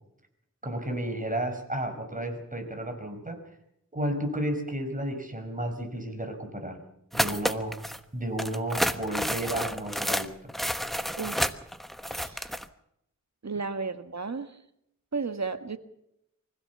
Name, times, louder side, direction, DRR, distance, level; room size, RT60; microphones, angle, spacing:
voice 1, 0.6-3.4 3.9-6.8 7.1-7.8 8.1-10.5, right 1 dB, 25° right, 5 dB, 4.9 m, -32 dB
sound 1, 7.1-8.0 8.4-12.7, equal, ahead, 1.1 m, -30 dB
voice 2, 11.2-11.5 12.0-12.5 13.4-14.6 15.1-15.8, right 4 dB, 60° right, 9 dB, 1.6 m, -34 dB
25.0 x 16.0 x 6.9 m, 0.79 s
wide cardioid pair, 70°, 31 cm